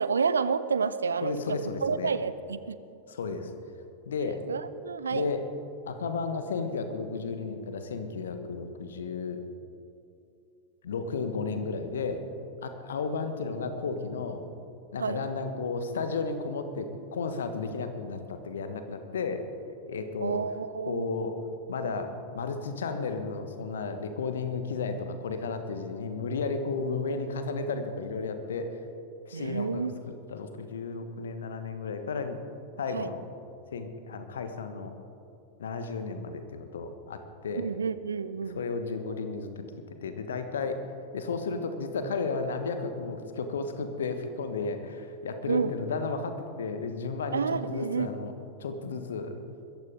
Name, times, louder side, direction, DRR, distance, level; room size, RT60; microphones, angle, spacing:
voice 1, 0.0-2.8 4.5-5.3 15.0-15.2 20.2-21.2 29.3-30.0 32.9-33.1 37.6-38.6 45.5-45.8 47.3-48.1, right 5 dB, 70° right, 15 dB, 0.5 m, -30 dB
voice 2, 1.2-2.1 3.1-3.5 4.1-4.4 5.1-5.4 5.9-9.4 10.8-12.2 12.6-14.4 14.9-19.4 19.9-20.4 20.9-21.3 21.7-28.8 29.3-29.8 30.3-32.4 32.8-33.2 33.7-34.9 35.6-37.6 38.4-39.6 40.0-40.8 41.1-48.3 48.6-49.4, left 4 dB, 65° left, 8 dB, 1.4 m, -33 dB
21.5 x 14.5 x 3.7 m, 2.6 s
figure-of-eight pair, 90°, 0 cm